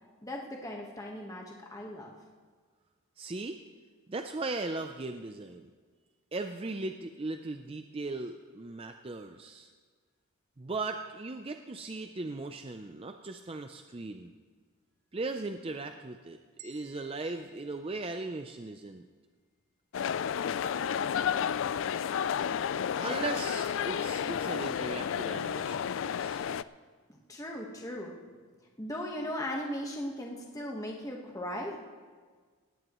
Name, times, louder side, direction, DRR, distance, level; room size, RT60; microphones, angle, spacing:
voice 1, 0.2-2.1 21.2-21.7 23.1-23.2 27.1-28.1 28.8-31.8, left 1 dB, 15° left, 0 dB, 1.3 m, -38 dB
voice 2, 3.2-3.6 4.1-5.7 6.3-9.7 10.6-14.3 15.1-16.4 16.6-19.0 23.0-26.5, right 3 dB, 25° right, 6 dB, 0.4 m, -38 dB
sound 1, 16.6-18.8, right 5 dB, 80° right, 2.3 m, -57 dB
sound 2, 19.9-26.6, left 8 dB, 60° left, 0.3 m, -31 dB
18.5 x 16.5 x 3.1 m, 1.5 s
head